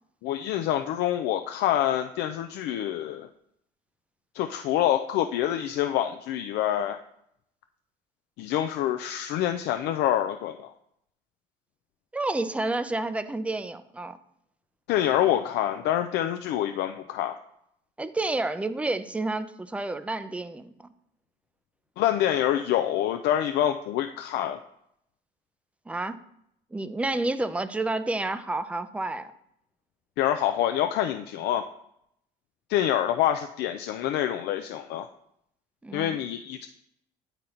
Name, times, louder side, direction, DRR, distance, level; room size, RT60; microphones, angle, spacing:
voice 1, 0.2-3.3 4.3-7.0 8.4-10.7 14.9-17.4 22.0-24.6 30.2-31.7 32.7-35.1 35.9-36.7, left 11 dB, 80° left, 7 dB, 0.4 m, -26 dB
voice 2, 12.1-14.2 18.0-20.9 25.9-26.2 26.7-29.3 35.8-36.2, right 2 dB, 5° right, 12 dB, 0.4 m, -30 dB
8.9 x 3.9 x 4.3 m, 0.76 s
cardioid pair, 110°, 17 cm